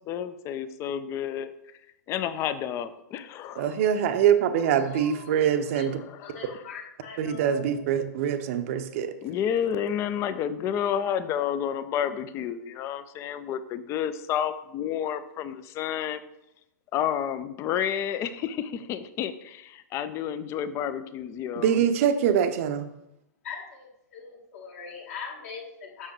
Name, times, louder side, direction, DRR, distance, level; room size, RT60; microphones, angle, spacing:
voice 1, 0.1-1.5 2.1-3.8 5.9-6.6 9.2-16.2 16.9-21.8, left 9 dB, 30° left, 13 dB, 0.5 m, -30 dB
voice 2, 3.6-6.0 7.2-9.1 21.6-22.9, right 9 dB, 45° right, 9 dB, 0.7 m, -24 dB
voice 3, 4.9-5.3 5.7-5.8 6.2-7.7 8.0-8.1 23.4-26.1, left 6 dB, 50° left, 0 dB, 2.0 m, -41 dB
7.3 x 6.5 x 3.2 m, 0.84 s
figure-of-eight pair, 105°, 10 cm